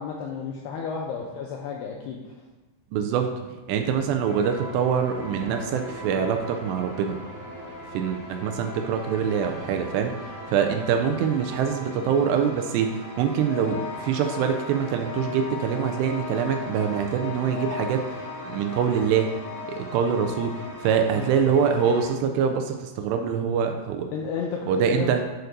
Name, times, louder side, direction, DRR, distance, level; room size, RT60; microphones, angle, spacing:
voice 1, 0.0-2.3 21.1-21.3 24.1-25.1, left 6 dB, 85° left, 0 dB, 2.4 m, -32 dB
voice 2, 2.9-3.3 3.7-7.2 7.9-10.1 10.5-19.3 19.7-24.1 24.7-25.2, right 7 dB, 85° right, 5 dB, 2.4 m, -24 dB
sound 1, 4.2-22.1, left 3 dB, 55° left, 3.7 m, -37 dB
9.1 x 6.7 x 2.6 m, 1.2 s
omnidirectional pair, 5.4 m